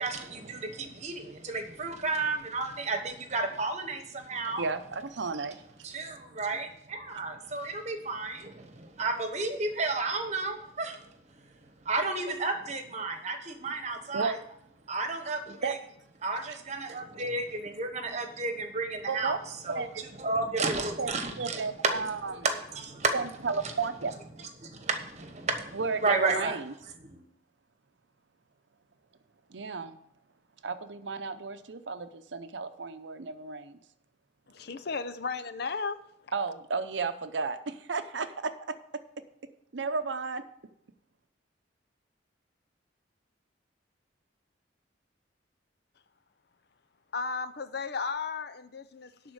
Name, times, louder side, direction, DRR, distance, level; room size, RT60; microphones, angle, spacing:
voice 1, 0.0-4.6 5.8-11.5 11.8-14.4 14.9-15.8 16.2-19.4 19.6-22.0 22.4-23.1 23.6-23.7 24.6-26.6 27.0-27.2, right 3 dB, 40° right, 6 dB, 1.2 m, -32 dB
voice 2, 4.6-5.6 14.1-14.4 15.6-15.7 16.5-16.6 19.1-19.4 19.7-20.0 20.6-20.7 21.0-21.1 21.4-22.5 23.1-24.1 25.7-26.7 29.5-30.0 30.6-33.8 36.3-38.5 39.7-40.4, right 4 dB, 70° right, 10 dB, 0.7 m, -33 dB
voice 3, 34.5-36.0 47.1-49.3, left 4 dB, 55° left, 11 dB, 0.6 m, -35 dB
11.5 x 4.3 x 7.9 m, 0.72 s
head